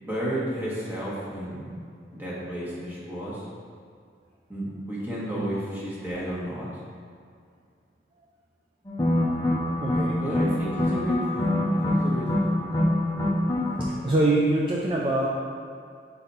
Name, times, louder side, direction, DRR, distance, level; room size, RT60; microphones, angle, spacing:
voice 1, 0.0-1.7 2.1-3.4 4.5-6.7 10.1-12.6, right 1 dB, 10° right, -7 dB, 1.3 m, -32 dB
sound 1, 8.9-13.8, left 1 dB, 20° left, 0.6 m, -25 dB
voice 2, 9.8-10.2 14.0-15.3, right 2 dB, 30° right, -4 dB, 0.4 m, -24 dB
4.3 x 4.0 x 5.4 m, 2.3 s
head